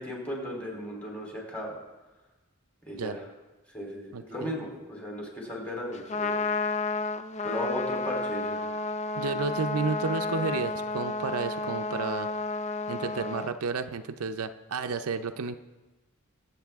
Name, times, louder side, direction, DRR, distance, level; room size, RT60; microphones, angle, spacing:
voice 1, 0.0-1.8 2.9-3.2 3.7-6.4 7.4-8.6, equal, 5° left, -2 dB, 3.3 m, -36 dB
voice 2, 4.1-4.5 9.2-12.3 12.9-15.6, right 4 dB, 75° right, 9 dB, 0.5 m, -31 dB
Trumpet, 5.9-13.5, left 3 dB, 30° left, 0.4 m, -31 dB
22.0 x 8.2 x 3.5 m, 1.1 s
head